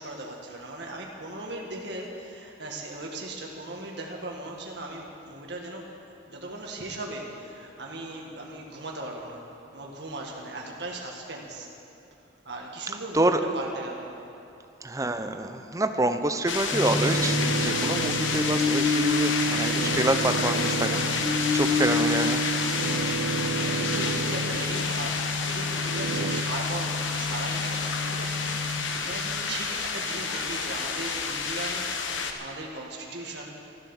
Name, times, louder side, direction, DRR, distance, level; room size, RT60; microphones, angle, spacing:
voice 1, 0.0-5.9 6.3-9.4 9.7-11.7 12.4-14.1 23.8-33.6, right 2 dB, 65° right, -1 dB, 1.8 m, -38 dB
voice 2, 12.9-13.4 14.8-22.4 23.1-23.2 26.2-26.3, right 2 dB, 15° right, 8 dB, 0.6 m, -27 dB
sound 1, 16.4-25.1 25.4-26.4, right 6 dB, 80° right, 0.5 m, -33 dB
sound 2, 16.5-32.3, left 5 dB, 85° left, 1.1 m, -30 dB
sound 3, 16.7-28.9, left 2 dB, ahead, 1.6 m, -30 dB
13.5 x 11.5 x 7.2 m, 2.8 s
head